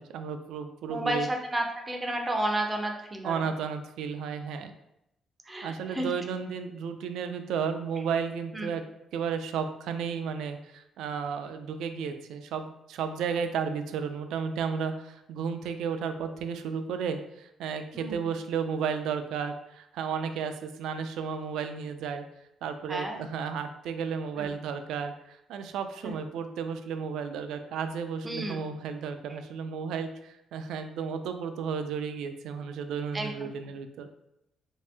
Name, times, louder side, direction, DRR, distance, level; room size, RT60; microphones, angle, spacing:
voice 1, 0.0-1.3 3.2-4.7 5.6-8.8 9.1-22.2 22.6-34.1, right 6 dB, 90° right, 7 dB, 0.3 m, -33 dB
voice 2, 0.9-3.5 5.5-6.1 8.5-8.7 17.9-18.3 22.9-23.3 24.4-24.5 26.0-26.1 28.2-28.6 33.1-33.5, right 1 dB, 15° right, 3 dB, 0.4 m, -32 dB
3.3 x 2.7 x 3.3 m, 0.82 s
cardioid pair, 165°, 0 cm